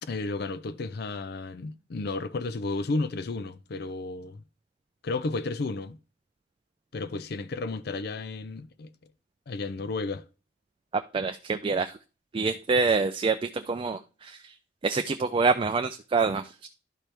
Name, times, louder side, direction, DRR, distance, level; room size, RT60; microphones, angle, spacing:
voice 1, 0.0-4.4 5.0-6.0 6.9-8.9 9.5-10.2, left 3 dB, 60° left, 0.5 m, -32 dB
voice 2, 11.1-12.0 12.3-14.5 14.8-16.7, right 4 dB, 30° right, 0.4 m, -26 dB
11.5 x 4.5 x 3.3 m
head